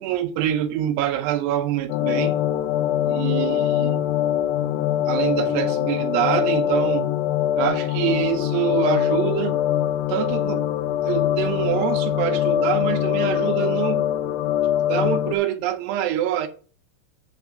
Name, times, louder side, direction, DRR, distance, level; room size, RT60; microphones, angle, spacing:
voice 1, 0.0-2.4 3.0-4.0 5.1-7.1 7.6-9.6 10.1-10.7 11.0-14.1 14.8-16.5, right 11 dB, 85° right, 2.9 m, -25 dB
sound 1, 1.9-15.4, left 11 dB, 85° left, 2.8 m, -23 dB
8.9 x 3.5 x 6.6 m
omnidirectional pair, 4.8 m